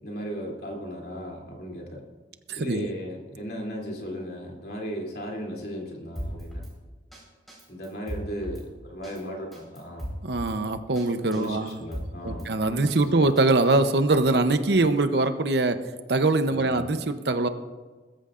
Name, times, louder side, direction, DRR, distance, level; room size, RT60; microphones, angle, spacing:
voice 1, 0.0-2.0 2.5-6.6 7.7-10.0 11.3-12.5 12.8-13.3 16.5-16.8, equal, 55° left, -1 dB, 3.1 m, -36 dB
voice 2, 2.5-2.9 10.2-11.8 12.2-17.5, right 2 dB, 65° right, 9 dB, 0.8 m, -23 dB
Drum kit, 6.2-6.7 7.1-7.2 7.5-8.6 9.0-9.2 9.5-10.6 11.0-11.1 11.3-12.5 12.9-13.8, equal, ahead, 4.6 m, -36 dB
21.0 x 14.0 x 2.5 m, 1.3 s
head